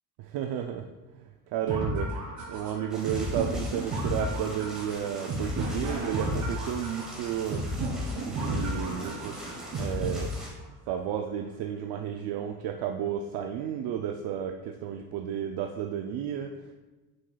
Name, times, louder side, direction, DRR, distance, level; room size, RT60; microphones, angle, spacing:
voice 1, 0.2-0.9 1.1-7.7 8.2-9.4 9.8-10.4 10.9-16.7, right 9 dB, 80° right, 3 dB, 0.5 m, -32 dB
sound 1, 1.7-10.7, equal, 50° right, 2.0 m, -33 dB
sound 2, 2.9-10.5, equal, ahead, 1.3 m, -44 dB
sound 3, 6.1-11.2, left 3 dB, 40° left, 0.8 m, -49 dB
7.7 x 5.6 x 2.2 m, 1.2 s
cardioid pair, 155°, 39 cm